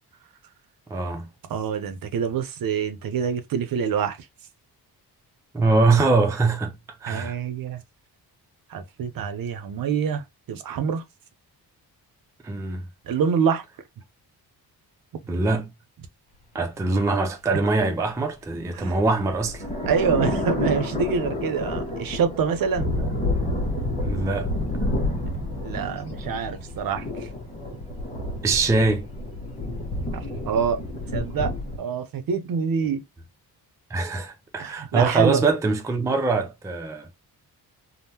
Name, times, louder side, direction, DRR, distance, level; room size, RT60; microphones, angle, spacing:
voice 1, 0.9-1.3 5.5-6.7 7.0-7.4 12.4-12.8 15.3-15.7 16.5-19.6 24.0-24.5 28.4-29.0 33.9-37.1, right 3 dB, 10° right, 0.3 m, -23 dB
voice 2, 1.5-4.2 7.1-7.8 8.7-11.0 13.1-13.6 18.7-19.0 19.9-22.9 25.6-27.3 30.1-30.8 31.1-33.1 34.6-35.4, right 6 dB, 60° right, 0.6 m, -26 dB
sound 1, 18.7-31.8, left 1 dB, 15° left, 1.1 m, -29 dB
3.5 x 2.0 x 2.7 m
wide cardioid pair, 165°, 40 cm